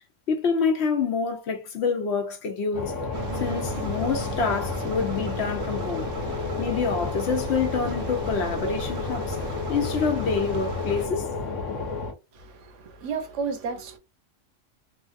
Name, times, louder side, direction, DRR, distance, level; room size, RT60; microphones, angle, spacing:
voice 1, 0.3-3.0 3.4-6.1 6.6-9.4 9.7-11.2, left 5 dB, 65° left, 0.8 m, -27 dB
sound 1, 2.7-12.1, left 4 dB, 85° left, 1.1 m, -31 dB
sound 2, 3.1-11.1, right 6 dB, 60° right, 0.7 m, -38 dB
voice 2, 12.3-14.0, right 5 dB, 75° right, 1.1 m, -32 dB
3.2 x 2.5 x 2.4 m
omnidirectional pair, 1.3 m